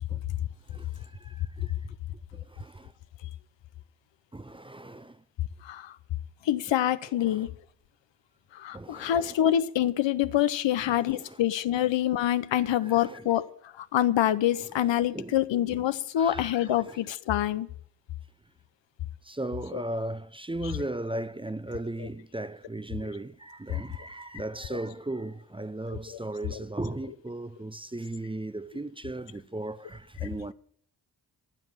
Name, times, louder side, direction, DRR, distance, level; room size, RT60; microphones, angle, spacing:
voice 1, 0.7-1.7 2.3-2.9 4.3-5.2 7.2-7.5 8.7-9.4 10.8-11.4 12.6-13.3 14.6-15.4 15.7-15.9 16.2-17.0 19.2-30.5, right 2 dB, 10° right, 0.5 m, -37 dB
voice 2, 5.6-5.9 6.4-7.5 8.5-13.4 13.7-17.7 19.7-19.8 22.0-22.1 24.7-24.8 25.9-26.2 26.5-26.6, left 11 dB, 90° left, 0.8 m, -26 dB
14.5 x 6.1 x 8.8 m
cardioid pair, 65°, 43 cm